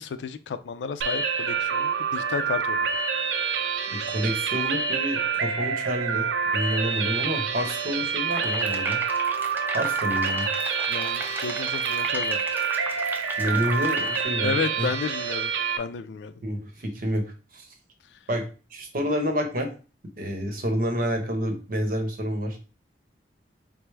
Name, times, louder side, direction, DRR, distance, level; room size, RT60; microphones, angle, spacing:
voice 1, 0.0-2.9 10.9-12.4 14.4-15.5 15.8-16.4, left 5 dB, 85° left, 11 dB, 0.4 m, -32 dB
sound 1, 1.0-15.8, right 6 dB, 85° right, 0.4 m, -27 dB
voice 2, 3.9-9.0 9.7-10.5 13.4-14.9 16.4-17.7 18.3-19.7 20.2-22.6, equal, 55° right, 4 dB, 0.8 m, -29 dB
sound 2, 8.3-14.2, right 2 dB, 10° right, 0.4 m, -37 dB
4.6 x 2.0 x 3.3 m, 0.35 s
head